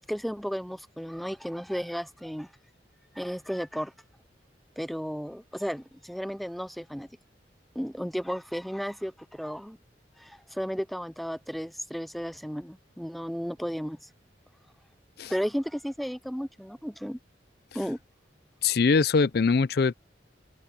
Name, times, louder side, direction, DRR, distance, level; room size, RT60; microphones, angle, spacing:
voice 1, 0.1-2.5 3.1-3.9 4.8-7.1 7.8-9.8 10.2-14.1 15.3-17.2 17.7-18.0, equal, ahead, 0.4 m, -34 dB
voice 2, 18.6-19.9, left 4 dB, 60° left, 0.5 m, -22 dB
head